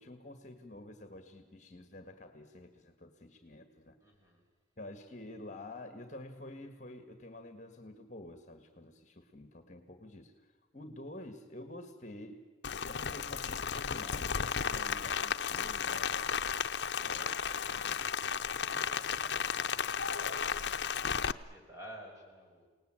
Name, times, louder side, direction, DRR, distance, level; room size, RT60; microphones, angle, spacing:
voice 1, 0.0-4.0 4.8-12.4 12.9-16.4 16.9-17.4 17.7-18.1, left 1 dB, 40° left, 7 dB, 1.7 m, -49 dB
voice 2, 4.0-4.5 16.5-22.7, equal, 15° right, 0 dB, 5.7 m, -54 dB
Rain, 12.6-21.3, left 7 dB, 70° left, 0.7 m, -34 dB
28.5 x 19.0 x 9.0 m, 1.4 s
head